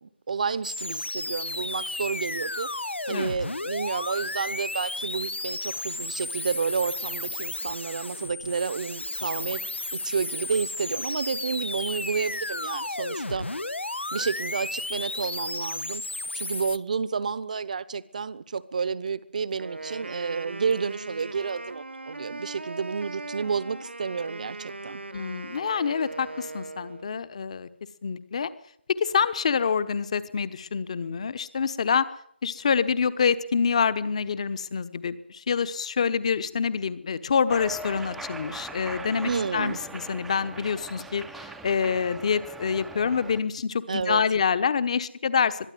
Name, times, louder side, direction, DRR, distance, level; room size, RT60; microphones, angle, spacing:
voice 1, 0.0-2.7 3.1-9.6 9.9-13.5 14.1-16.0 16.3-25.0 39.2-39.8 43.9-44.2, right 5 dB, 40° right, 18 dB, 1.0 m, -30 dB
sound 1, 0.6-16.8, left 2 dB, 90° left, 0.9 m, -33 dB
Wind instrument woodwind instrument, 19.6-27.2, right 3 dB, 80° right, 1.8 m, -39 dB
voice 2, 25.1-27.7 28.0-28.5 28.9-32.1 32.4-45.7, left 6 dB, 35° left, 15 dB, 1.2 m, -26 dB
Cheering, 37.5-43.4, right 2 dB, ahead, 0.7 m, -40 dB
22.0 x 13.0 x 9.4 m, 0.67 s
figure-of-eight pair, 160°, 6 cm